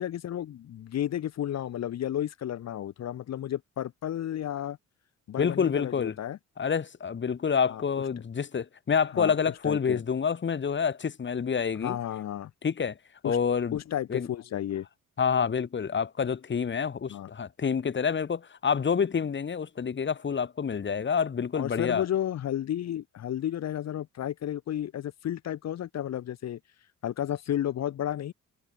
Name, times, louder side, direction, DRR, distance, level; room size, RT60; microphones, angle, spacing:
voice 1, 0.0-4.8 5.3-6.4 7.7-7.8 9.1-9.4 9.6-10.0 11.8-12.5 13.2-13.4 13.7-14.9 17.1-17.3 21.5-26.6 27.0-28.3, left 11 dB, 60° left, 1.1 m, -32 dB
voice 2, 5.4-6.1 6.6-12.0 12.6-12.9 13.2-13.8 14.1-14.3 15.2-22.0, left 6 dB, 40° left, 2.2 m, -28 dB
cardioid pair, 90°, 30 cm